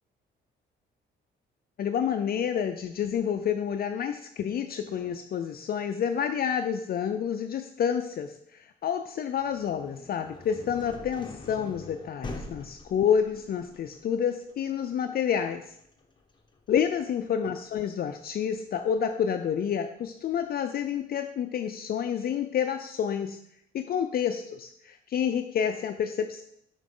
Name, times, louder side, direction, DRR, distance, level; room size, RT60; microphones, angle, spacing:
voice 1, 1.8-15.6 16.7-23.4 23.7-26.4, left 8 dB, 50° left, 7 dB, 0.4 m, -29 dB
sound 1, 9.3-19.1, left 2 dB, 25° left, 0.9 m, -45 dB
6.0 x 5.8 x 3.7 m, 0.72 s
cardioid pair, 90°, 20 cm